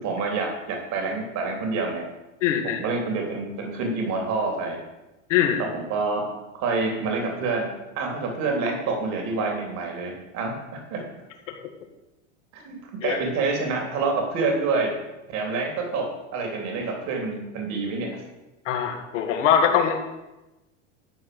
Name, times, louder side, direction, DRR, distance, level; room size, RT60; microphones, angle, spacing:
voice 1, 0.0-2.0 2.6-4.8 5.6-6.3 6.5-7.7 7.9-11.0 12.5-14.9 15.3-18.1, right 3 dB, 50° right, 2 dB, 3.3 m, -27 dB
voice 2, 2.4-2.8 5.3-5.6 13.0-13.2 18.7-20.0, left 8 dB, 80° left, 4 dB, 2.2 m, -22 dB
12.5 x 5.0 x 7.8 m, 1.0 s
supercardioid pair, 120°, 37 cm